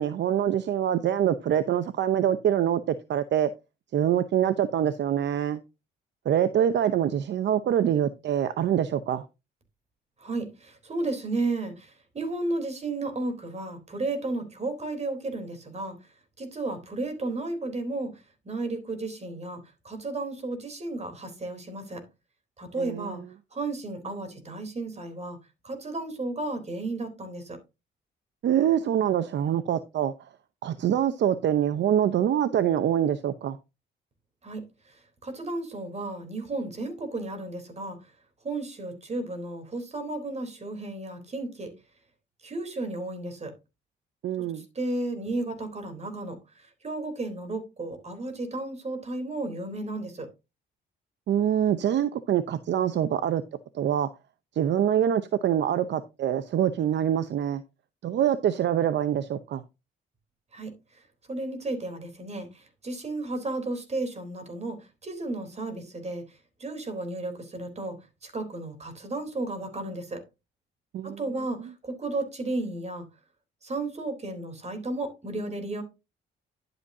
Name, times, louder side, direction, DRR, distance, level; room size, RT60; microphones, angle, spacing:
voice 1, 0.0-3.5 3.9-5.6 6.3-9.2 22.8-23.2 28.4-30.1 30.6-33.6 44.2-44.6 51.3-53.4 53.7-54.1 54.6-57.6 58.0-59.6 70.9-71.2, right 10 dB, 65° right, 0.8 m, -25 dB
voice 2, 10.2-16.0 16.4-22.0 22.6-23.2 23.5-25.4 25.6-27.6 34.4-34.6 35.2-38.0 38.4-41.7 42.4-43.5 44.5-50.3 60.5-60.7 61.3-64.8 65.0-66.2 66.6-68.0 68.2-70.2 71.0-73.1 73.6-75.8, right 2 dB, 35° right, 3.6 m, -33 dB
11.5 x 8.0 x 2.7 m
cardioid pair, 90°, 20 cm